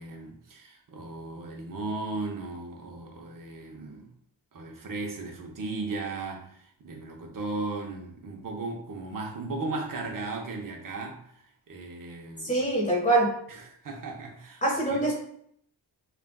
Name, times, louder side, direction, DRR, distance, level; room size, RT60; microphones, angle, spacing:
voice 1, 0.0-4.1 4.5-12.5 13.5-14.6 14.9-15.0, right 3 dB, 45° right, 1 dB, 0.7 m, -36 dB
voice 2, 12.4-13.3 14.6-15.1, right 2 dB, 15° left, -4 dB, 1.3 m, -24 dB
3.4 x 2.4 x 2.3 m, 0.68 s
wide cardioid pair, 90°, 45 cm